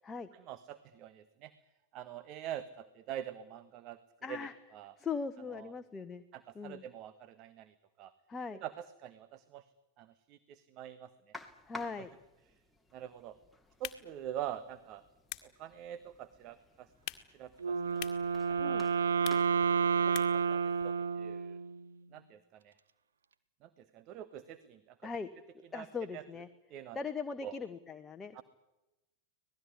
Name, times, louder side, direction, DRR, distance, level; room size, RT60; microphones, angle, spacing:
voice 1, 0.3-1.5 1.9-4.0 4.3-4.5 4.7-4.9 5.5-5.7 6.3-8.1 8.5-9.6 10.0-11.3 12.0-12.1 12.9-13.4 13.8-15.0 15.4-16.9 17.3-18.2 18.5-18.9 20.0-21.6 22.1-22.7 23.6-25.1 25.7-25.9 26.1-26.2 26.7-27.0 27.4-27.5 28.3-28.4, right 11 dB, 40° right, 14 dB, 1.3 m, -45 dB
voice 2, 4.2-4.5 5.0-6.2 6.5-6.8 8.3-8.6 11.7-12.1 18.6-18.9 25.0-25.3 25.7-26.5 26.9-28.4, left 5 dB, 15° left, 8 dB, 1.3 m, -40 dB
sound 1, 11.3-20.9, left 2 dB, ahead, 2.6 m, -54 dB
sound 2, 13.7-20.5, left 15 dB, 40° left, 1.9 m, -49 dB
Wind instrument woodwind instrument, 17.6-21.8, right 6 dB, 70° right, 1.4 m, -30 dB
25.5 x 19.0 x 9.8 m, 0.98 s
figure-of-eight pair, 90°, 0 cm